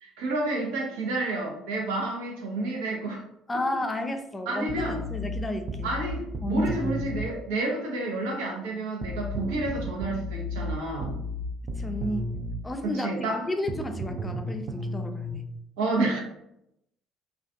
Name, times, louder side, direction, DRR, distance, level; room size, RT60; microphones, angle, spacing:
voice 1, 0.0-3.2 4.5-4.9 5.8-11.2 12.8-13.4 15.8-16.2, right 2 dB, 80° right, -1 dB, 0.7 m, -30 dB
voice 2, 3.5-5.9 6.4-7.0 11.8-12.3 12.6-15.4, left 1 dB, 20° left, 5 dB, 0.4 m, -32 dB
sound 1, 4.7-7.3 9.0-12.6 13.7-15.3, left 1 dB, 50° right, 0.3 m, -33 dB
2.4 x 2.2 x 2.5 m, 0.79 s
hypercardioid pair, 60°, 0 cm